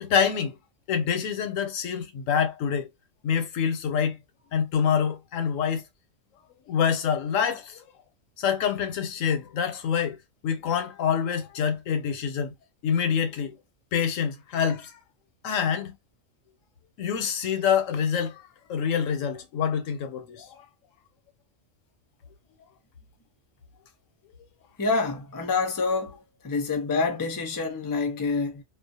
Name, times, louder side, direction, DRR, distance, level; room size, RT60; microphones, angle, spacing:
voice 1, 0.0-0.5 0.9-2.9 3.2-4.2 4.5-5.8 6.7-7.8 8.4-10.2 10.4-12.5 12.8-13.6 13.9-14.9 15.4-16.0 17.0-18.4 18.7-20.6, left 7 dB, 85° left, 1.0 m, -26 dB
voice 2, 24.8-26.2 26.4-28.6, left 4 dB, 35° left, 0.3 m, -27 dB
2.4 x 2.1 x 2.6 m
omnidirectional pair, 1.3 m